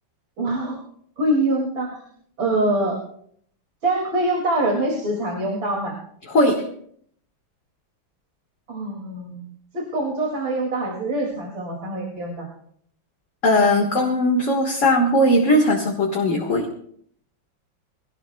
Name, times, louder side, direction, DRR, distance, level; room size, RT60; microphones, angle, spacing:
voice 1, 0.4-0.8 1.2-2.0 2.4-3.0 3.8-5.9 8.7-9.4 9.7-12.5, right 1 dB, 75° right, -1 dB, 3.3 m, -24 dB
voice 2, 6.3-6.6 13.4-16.7, left 1 dB, 40° left, 1 dB, 1.9 m, -19 dB
23.0 x 17.5 x 2.3 m, 0.63 s
omnidirectional pair, 2.1 m